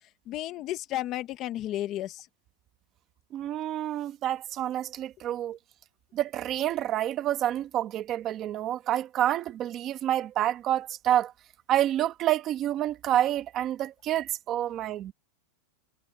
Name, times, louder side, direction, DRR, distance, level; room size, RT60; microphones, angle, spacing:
voice 1, 0.3-2.3, left 14 dB, 25° left, 0.8 m, -33 dB
voice 2, 3.3-5.6 6.1-11.3 11.7-15.1, right 12 dB, 25° right, 1.4 m, -28 dB
supercardioid pair, 175°, 0 cm